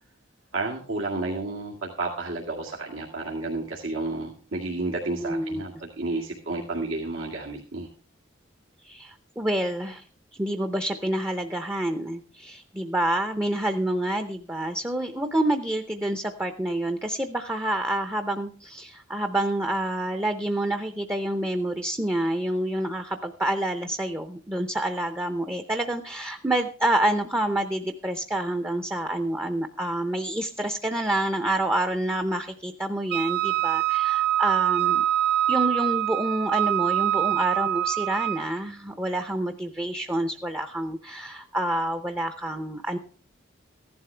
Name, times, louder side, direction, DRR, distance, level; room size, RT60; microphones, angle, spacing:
voice 1, 0.5-7.9, right 2 dB, 85° right, -2 dB, 2.1 m, -31 dB
voice 2, 5.2-5.6 8.8-10.0 10.4-35.0 35.5-43.0, right 1 dB, 10° right, 7 dB, 0.6 m, -28 dB
Wind instrument woodwind instrument, 33.1-38.5, right 12 dB, 50° right, 0.8 m, -24 dB
15.0 x 11.5 x 3.3 m, 0.42 s
head